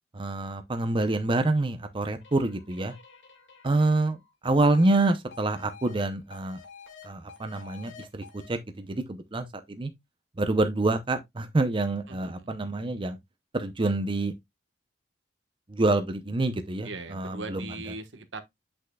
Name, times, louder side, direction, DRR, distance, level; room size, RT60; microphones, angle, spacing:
voice 1, 0.1-2.9 3.6-4.2 4.4-6.6 7.0-9.9 10.4-13.2 13.5-14.3 15.7-17.6, right 2 dB, 25° right, 0.6 m, -27 dB
sound 1, 2.2-6.1 6.3-8.5, left 6 dB, 80° left, 2.0 m, -50 dB
voice 2, 12.1-12.5 16.8-18.4, right 3 dB, 80° right, 1.3 m, -39 dB
8.2 x 6.2 x 2.3 m
head